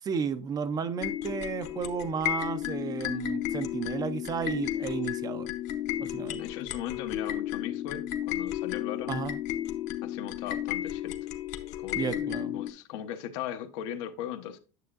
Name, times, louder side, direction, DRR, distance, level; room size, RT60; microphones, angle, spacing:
voice 1, 0.0-5.5 6.0-6.4 9.1-9.4 12.0-12.6, right 6 dB, 25° right, 0.4 m, -33 dB
sound 1, 1.0-12.7, left 12 dB, 50° left, 0.8 m, -33 dB
voice 2, 6.4-9.3 10.0-11.2 11.8-12.2 12.5-14.6, left 10 dB, 75° left, 0.9 m, -38 dB
9.3 x 6.8 x 2.4 m
cardioid pair, 155°, 16 cm